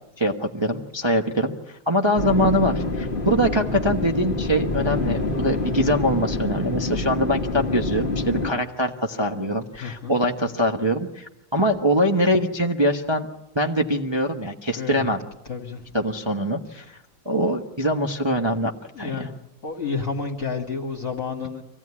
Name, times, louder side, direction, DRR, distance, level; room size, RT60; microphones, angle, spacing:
voice 1, 0.2-13.3 13.5-15.2 15.9-17.0 17.2-18.7 19.0-19.3, equal, 15° right, 2 dB, 1.0 m, -23 dB
sound 1, 2.2-8.5, left 2 dB, 30° left, 1.7 m, -26 dB
voice 2, 9.8-10.1 14.8-15.1 15.5-15.8 19.0-19.3 19.6-21.6, left 5 dB, 45° left, 1 dB, 2.1 m, -30 dB
24.5 x 16.5 x 9.7 m, 0.85 s
omnidirectional pair, 2.0 m